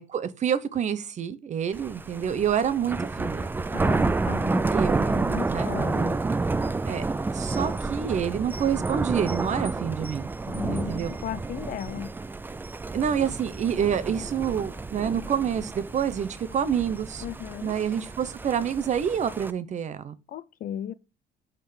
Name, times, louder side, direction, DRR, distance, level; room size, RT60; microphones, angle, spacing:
voice 1, 0.0-3.6 4.7-5.0 5.5-5.7 6.9-7.0 7.3-10.3 10.7-11.1 12.9-17.2 17.6-20.2, right 8 dB, 45° right, 0.8 m, -27 dB
Thunder, 1.7-19.5, right 3 dB, 10° right, 0.3 m, -30 dB
voice 2, 3.7-6.2 10.5-12.1 17.2-17.7 20.3-20.9, left 10 dB, 55° left, 0.6 m, -36 dB
5.8 x 5.1 x 5.1 m
cardioid pair, 110°, 17 cm